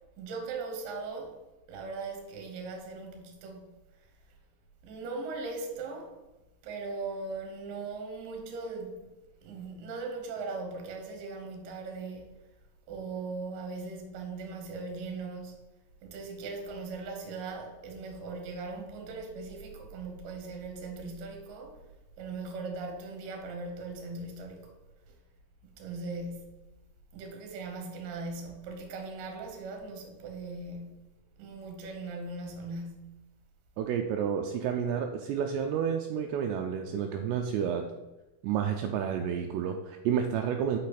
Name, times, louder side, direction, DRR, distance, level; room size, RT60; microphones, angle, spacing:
voice 1, 0.2-1.4 1.7-3.7 4.8-6.2 6.6-9.1 9.4-12.3 12.9-15.6 16.0-21.8 22.2-24.7 25.8-26.7 27.1-31.1 31.4-33.2, right 3 dB, 65° right, 2.4 m, -39 dB
voice 2, 33.8-37.8 38.4-40.8, right 8 dB, 85° right, 2.6 m, -30 dB
6.4 x 5.5 x 4.1 m
omnidirectional pair, 5.1 m